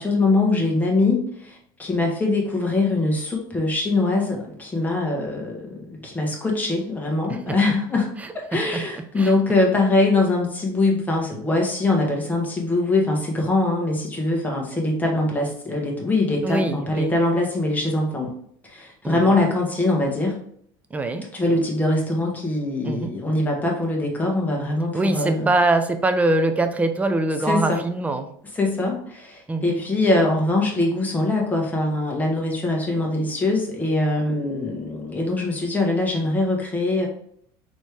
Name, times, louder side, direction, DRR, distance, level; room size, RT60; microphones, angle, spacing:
voice 1, 0.0-8.1 8.3-18.3 18.6-20.3 21.3-25.5 27.4-27.8 28.5-37.1, left 2 dB, 15° left, 0 dB, 1.4 m, -22 dB
voice 2, 8.2-8.8 9.2-9.3 16.4-17.1 19.0-19.4 20.9-21.3 22.8-23.2 24.9-28.3 29.5-29.7, right 2 dB, 15° right, 7 dB, 0.5 m, -23 dB
4.3 x 3.1 x 3.4 m, 0.65 s
supercardioid pair, 115°, 11 cm